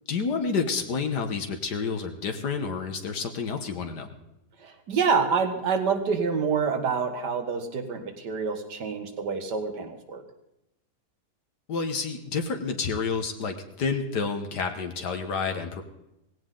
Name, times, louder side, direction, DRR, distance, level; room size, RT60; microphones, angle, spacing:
voice 1, 0.1-4.1 11.7-15.8, left 5 dB, 80° left, 5 dB, 1.9 m, -29 dB
voice 2, 4.6-10.2, right 5 dB, 85° right, 7 dB, 2.2 m, -27 dB
18.5 x 16.5 x 3.9 m, 0.88 s
omnidirectional pair, 1.7 m